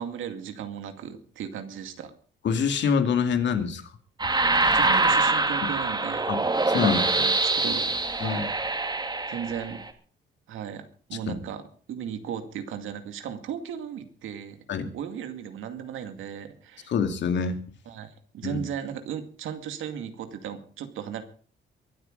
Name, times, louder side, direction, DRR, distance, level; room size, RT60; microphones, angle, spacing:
voice 1, 0.0-2.1 4.6-6.3 6.7-8.5 9.3-9.9 10.5-14.6 14.9-16.9 17.9-21.2, right 8 dB, 85° right, 7 dB, 2.3 m, -36 dB
voice 2, 2.4-3.8 5.6-5.7 6.3-6.4 6.7-7.0 8.2-8.4 11.3-11.4 14.7-14.9 16.9-17.6 18.4-18.6, left 6 dB, 65° left, 7 dB, 2.5 m, -25 dB
sound 1, 4.2-9.9, right 3 dB, 20° right, 2.5 m, -24 dB
23.0 x 8.7 x 5.2 m, 0.43 s
cardioid pair, 90°, 20 cm